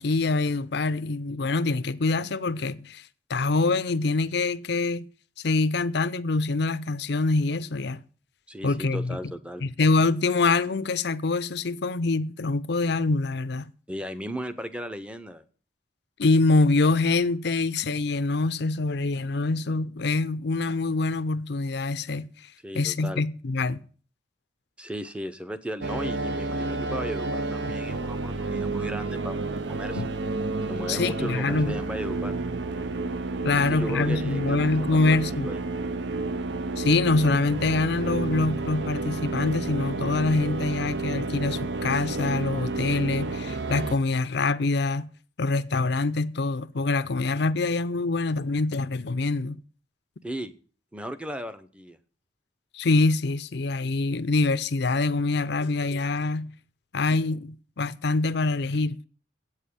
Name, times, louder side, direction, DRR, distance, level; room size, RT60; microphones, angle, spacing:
voice 1, 0.0-3.0 3.3-5.1 5.4-8.0 8.6-9.2 9.6-13.7 16.2-22.3 22.7-23.8 30.0-30.1 30.9-31.8 33.4-35.5 36.8-45.1 45.4-49.6 52.7-56.5 56.9-59.0, left 3 dB, 60° left, 0.6 m, -25 dB
voice 2, 8.5-9.6 13.9-15.4 22.6-23.3 24.8-30.0 30.6-32.3 33.5-35.6 50.2-50.5 50.9-52.0, equal, 5° right, 0.7 m, -36 dB
sound 1, 25.8-44.0, right 3 dB, 65° right, 0.7 m, -30 dB
8.5 x 7.3 x 8.5 m
head